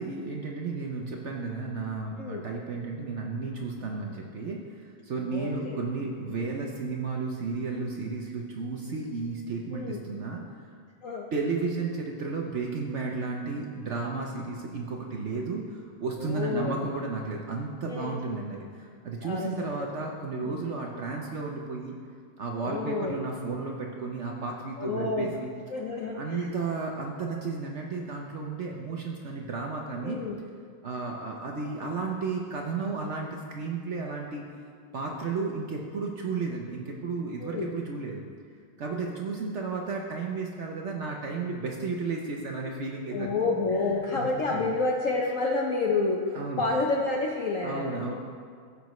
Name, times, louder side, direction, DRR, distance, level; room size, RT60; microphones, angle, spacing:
voice 1, 0.0-10.4 11.3-21.9 22.4-25.5 26.1-30.2 30.8-34.4 34.9-38.2 38.8-43.3 43.7-44.6 46.3-46.7 47.6-48.1, right 4 dB, 80° right, 0 dB, 0.6 m, -33 dB
voice 2, 5.2-5.8 9.7-10.0 11.0-11.3 16.2-16.7 17.9-18.2 19.2-19.9 20.3-20.6 22.5-23.2 24.8-25.3 25.7-26.5 30.0-30.4 37.4-37.7 43.1-48.1, left 3 dB, 75° left, -1 dB, 0.7 m, -29 dB
15.0 x 6.7 x 3.1 m, 2.1 s
omnidirectional pair, 2.2 m